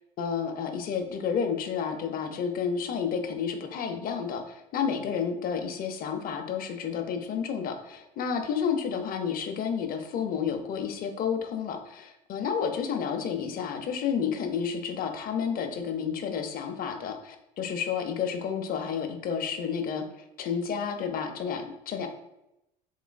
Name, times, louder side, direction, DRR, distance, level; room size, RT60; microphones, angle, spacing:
voice 1, 0.2-20.1 20.4-22.1, left 7 dB, 45° left, 5 dB, 0.5 m, -31 dB
3.2 x 3.0 x 2.2 m, 0.86 s
hypercardioid pair, 80°, 21 cm